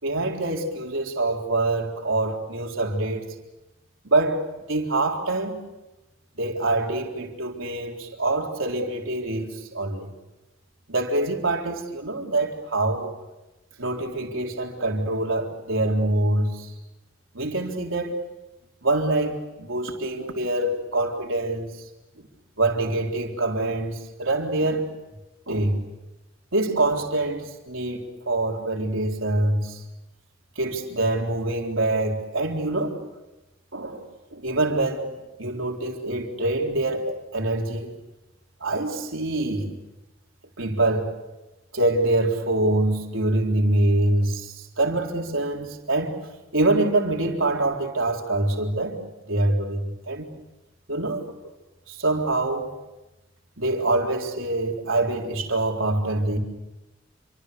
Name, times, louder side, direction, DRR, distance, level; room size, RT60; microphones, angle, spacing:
voice 1, 0.0-3.3 4.0-4.4 4.7-5.6 6.4-10.1 10.9-13.1 13.8-16.7 17.3-18.2 18.8-21.7 22.6-24.9 25.5-25.8 26.5-28.0 28.3-29.8 30.6-33.0 33.7-34.0 34.3-35.1 35.4-37.9 38.6-39.7 40.6-41.1 41.7-46.2 46.5-49.0 49.3-50.3 50.9-51.2 51.9-52.7 53.6-56.4, right 2 dB, 70° right, 3.9 m, -25 dB
28.0 x 25.5 x 6.9 m
head